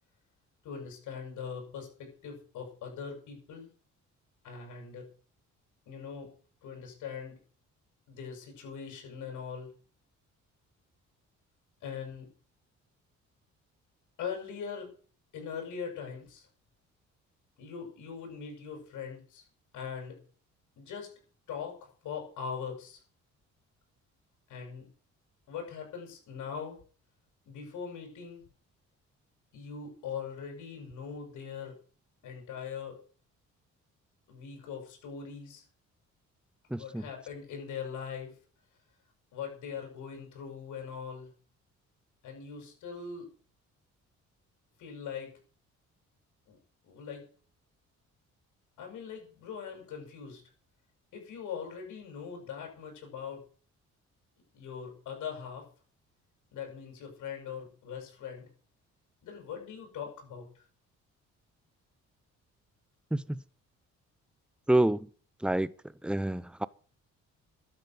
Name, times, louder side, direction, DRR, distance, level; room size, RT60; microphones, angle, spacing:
voice 1, 0.6-3.7 4.4-5.1 5.9-6.3 6.6-7.4 8.1-9.7 11.8-12.3 14.2-14.9 15.3-16.5 17.6-19.4 19.7-20.2 20.8-21.1 21.5-21.8 22.0-23.0 24.5-24.9 25.5-26.8 27.5-28.4 29.5-31.8 32.2-33.0 34.3-35.6 36.7-38.3 39.3-41.3 42.2-43.3 44.8-45.3 46.5-46.6 46.8-47.3 48.8-50.4 51.1-53.4 54.5-55.7 56.5-58.5 59.2-60.6, left 6 dB, 80° left, 7.3 m, -41 dB
voice 2, 36.7-37.1 63.1-63.4 64.7-65.1 65.4-65.7 66.0-66.7, right 1 dB, 5° right, 0.7 m, -28 dB
12.5 x 9.1 x 8.0 m
cardioid pair, 90°, 30 cm